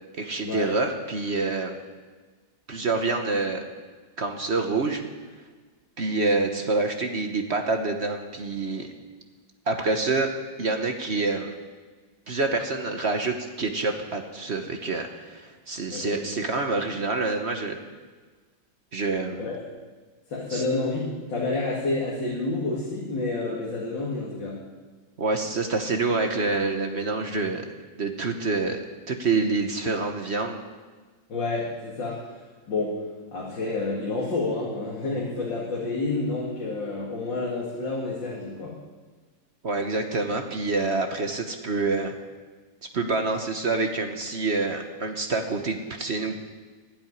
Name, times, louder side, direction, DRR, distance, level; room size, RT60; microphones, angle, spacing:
voice 1, 0.1-1.8 2.7-3.6 4.2-5.0 6.0-8.9 9.7-10.3 10.6-11.5 12.3-17.8 18.9-19.5 20.5-20.6 25.2-28.8 29.1-30.6 39.6-42.1 42.9-46.4, right 3 dB, 40° right, 5 dB, 1.1 m, -27 dB
voice 2, 20.3-24.6 31.3-32.9 33.3-38.7, left 3 dB, 70° left, -4 dB, 3.0 m, -29 dB
12.0 x 8.9 x 9.9 m, 1.4 s
omnidirectional pair, 2.1 m